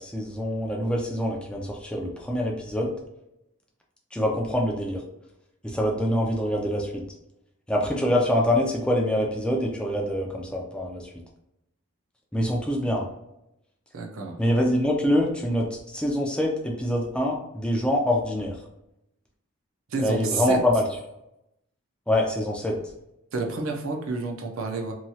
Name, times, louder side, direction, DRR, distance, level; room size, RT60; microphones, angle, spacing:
voice 1, 0.0-2.9 4.1-5.0 5.6-7.0 7.7-11.1 12.3-13.1 14.4-18.6 20.0-20.8 22.1-22.8, left 1 dB, 5° left, -1 dB, 0.4 m, -25 dB
voice 2, 13.9-14.4 19.9-20.6 23.3-24.9, right 3 dB, 75° right, 2 dB, 0.5 m, -29 dB
3.0 x 2.3 x 2.7 m, 0.86 s
head